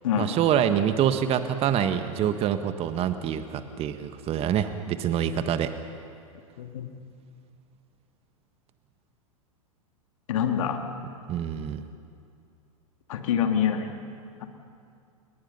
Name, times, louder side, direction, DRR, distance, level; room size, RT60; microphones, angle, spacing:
voice 1, 0.2-5.7 11.3-11.8, right 9 dB, 35° right, 9 dB, 1.4 m, -26 dB
voice 2, 6.6-6.9 10.3-10.8 13.1-13.9, left 8 dB, 65° left, 5 dB, 2.5 m, -25 dB
29.0 x 22.5 x 5.6 m, 2.4 s
hypercardioid pair, 100°, 18 cm